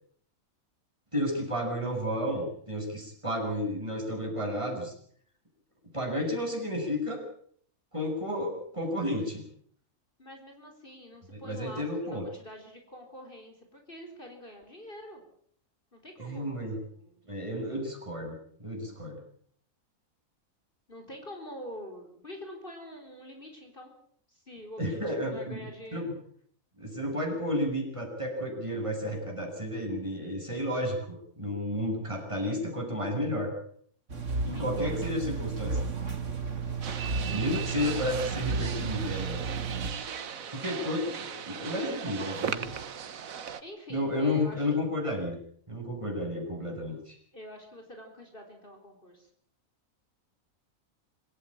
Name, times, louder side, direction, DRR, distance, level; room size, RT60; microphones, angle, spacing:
voice 1, 1.1-4.9 5.9-7.2 7.9-9.5 11.3-12.2 16.2-16.8 17.3-19.2 24.8-26.1 26.8-33.5 34.4-35.8 37.3-39.4 40.5-42.8 43.9-45.4 45.7-47.2, left 1 dB, 20° right, 0 dB, 7.1 m, -32 dB
voice 2, 10.2-15.2 15.9-17.2 20.9-23.9 24.3-26.1 34.5-34.8 37.3-37.9 43.6-44.7 47.3-49.3, equal, 40° left, 3 dB, 4.4 m, -46 dB
sound 1, 34.1-39.9, right 4 dB, 60° right, 2.7 m, -33 dB
sound 2, 36.8-43.6, right 7 dB, 75° right, 1.6 m, -38 dB
26.0 x 14.5 x 8.8 m, 0.62 s
omnidirectional pair, 1.5 m